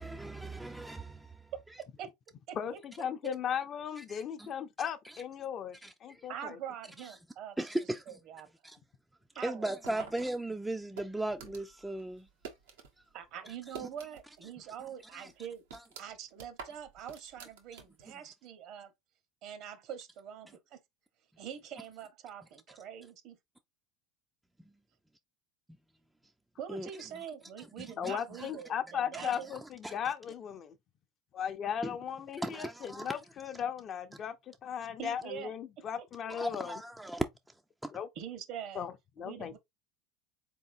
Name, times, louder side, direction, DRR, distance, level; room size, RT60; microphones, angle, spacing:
voice 1, 0.0-1.5 4.0-4.5 5.1-5.2 5.8-6.3 7.6-8.2 8.6-8.8 9.4-12.3 13.8-13.9 15.1-15.3 15.7-15.8 26.7-26.9 27.6-28.5 29.1-30.0 31.8-31.9 32.4-33.2 36.3-37.2 37.8-37.9, right 1 dB, 5° right, 0.4 m, -38 dB
voice 2, 1.8-2.1 2.5-3.4 6.3-7.6 8.1-8.5 9.3-10.1 13.1-15.6 16.0-18.9 19.4-20.8 21.4-23.4 26.6-29.6 35.0-35.5 38.2-38.9 39.2-39.6, right 9 dB, 55° right, 1.1 m, -44 dB
voice 3, 2.5-6.6 28.0-30.8 31.3-36.8 37.9-38.1 38.7-39.6, left 8 dB, 40° left, 0.6 m, -37 dB
sound 1, 9.8-12.9 13.2-14.5 14.8-14.9 15.3-18.1, right 6 dB, 90° right, 1.2 m, -49 dB
4.0 x 3.7 x 2.6 m
supercardioid pair, 100°, 0 cm